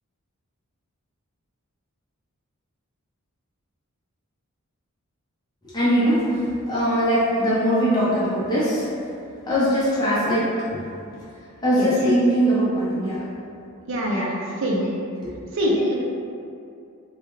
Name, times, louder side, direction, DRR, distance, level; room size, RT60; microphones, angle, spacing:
voice 1, 5.7-6.3 6.7-8.8 9.5-10.5 11.6-13.2 14.1-14.3 15.2-15.3, equal, 20° left, -10 dB, 0.6 m, -21 dB
voice 2, 13.9-14.9 15.5-16.0, equal, 60° right, -3 dB, 0.6 m, -24 dB
3.4 x 2.2 x 3.0 m, 2.5 s
head